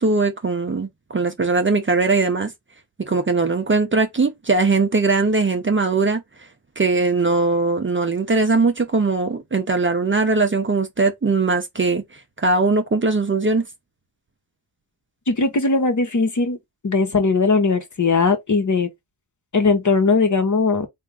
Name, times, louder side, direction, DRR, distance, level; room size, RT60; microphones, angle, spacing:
voice 1, 0.0-2.5 3.0-6.2 6.8-12.0 12.4-13.6, right 3 dB, 25° right, 0.8 m, -20 dB
voice 2, 15.3-16.6 16.8-18.9 19.5-20.9, left 4 dB, 40° left, 1.3 m, -19 dB
3.6 x 2.7 x 3.5 m
cardioid pair, 65°, 45 cm